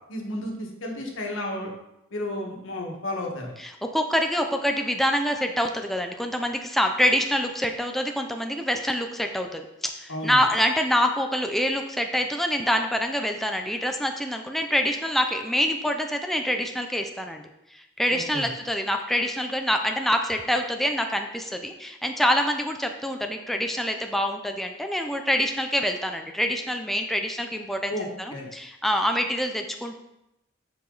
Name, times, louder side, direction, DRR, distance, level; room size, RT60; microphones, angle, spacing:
voice 1, 0.1-1.7 2.1-3.5 10.1-10.4 18.1-18.5 27.9-28.5, left 1 dB, 90° left, 0 dB, 1.5 m, -32 dB
voice 2, 3.6-17.4 17.7-30.0, equal, ahead, 4 dB, 0.4 m, -26 dB
8.2 x 4.8 x 3.9 m, 0.88 s
head